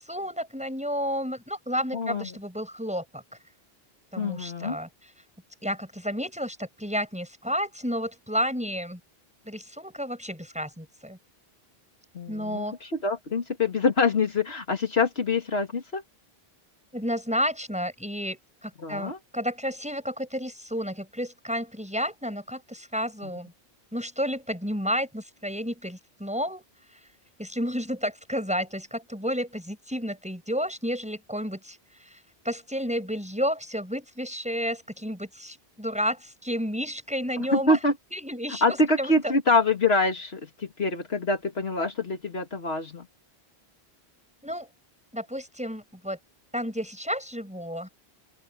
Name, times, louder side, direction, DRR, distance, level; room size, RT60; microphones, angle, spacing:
voice 1, 0.1-3.2 4.1-4.9 5.6-9.0 9.5-11.2 12.3-12.8 16.9-23.5 23.9-26.6 27.4-31.8 32.4-37.8 38.1-39.1 44.4-44.7 45.1-46.2 46.5-47.9, equal, 5° right, 6.3 m, -31 dB
voice 2, 1.9-2.3 4.2-4.8 12.1-16.0 18.8-19.2 37.4-37.9 38.6-43.0, left 3 dB, 80° left, 2.5 m, -25 dB
open air
omnidirectional pair, 1.0 m